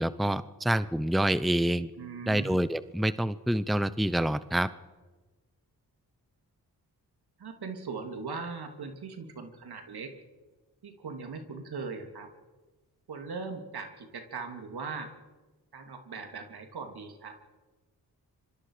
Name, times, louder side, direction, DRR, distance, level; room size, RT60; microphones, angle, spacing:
voice 1, 0.0-1.9 2.3-4.7, right 1 dB, ahead, 15 dB, 0.8 m, -27 dB
voice 2, 2.0-2.6 7.4-10.1 10.8-12.3 13.1-15.1 15.7-17.4, right 4 dB, 70° right, 5 dB, 3.1 m, -39 dB
26.0 x 24.0 x 5.1 m, 1.2 s
cardioid pair, 55°, 39 cm